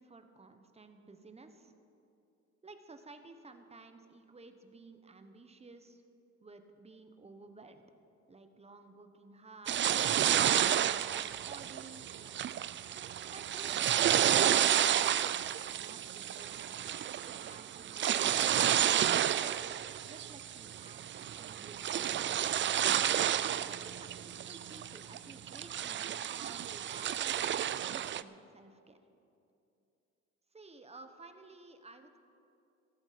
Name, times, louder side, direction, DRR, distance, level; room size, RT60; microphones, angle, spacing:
voice 1, 0.0-1.7 2.6-6.0 6.4-7.8 8.3-12.6 13.3-15.5 15.8-16.8 17.2-19.0 19.2-19.6 20.0-22.1 23.4-29.0 30.5-32.2, right 3 dB, 20° right, 7 dB, 1.2 m, -54 dB
sound 1, 9.7-28.2, right 10 dB, 40° right, 0.4 m, -31 dB
13.5 x 13.0 x 5.1 m, 2.7 s
cardioid pair, 90°, 30 cm